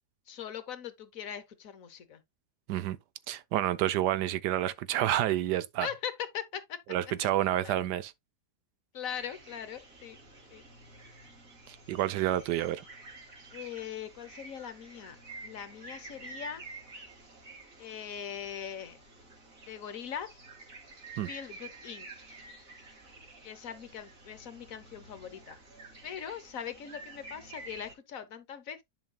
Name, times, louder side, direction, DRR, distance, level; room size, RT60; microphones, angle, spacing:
voice 1, 0.3-2.2 5.8-6.8 7.6-7.8 8.9-10.2 10.5-10.6 13.5-15.2 15.4-16.6 17.8-19.0 19.7-20.4 21.3-22.1 23.4-25.6 26.0-28.8, left 8 dB, 60° left, 1.2 m, -40 dB
voice 2, 3.3-5.9 6.9-8.1 11.7-12.8 21.2-21.3, right 13 dB, 80° right, 1.2 m, -29 dB
sound 1, 9.1-27.9, right 3 dB, 55° right, 2.9 m, -50 dB
10.5 x 5.5 x 2.2 m
omnidirectional pair, 1.8 m